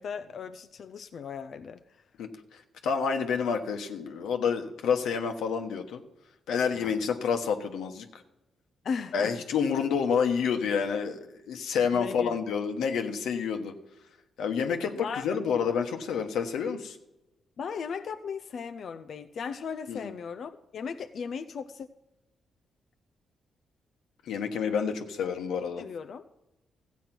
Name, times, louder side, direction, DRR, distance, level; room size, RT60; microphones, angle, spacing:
voice 1, 0.0-1.8 6.7-7.1 8.8-9.3 11.9-12.4 14.9-15.3 17.6-21.9 25.8-26.2, left 6 dB, 60° left, 8 dB, 0.6 m, -37 dB
voice 2, 2.2-6.0 6.5-8.2 9.1-13.7 14.4-17.0 19.9-20.0 24.2-25.9, left 6 dB, 85° left, 5 dB, 1.3 m, -29 dB
14.5 x 8.4 x 6.1 m, 0.95 s
cardioid pair, 80°, 0 cm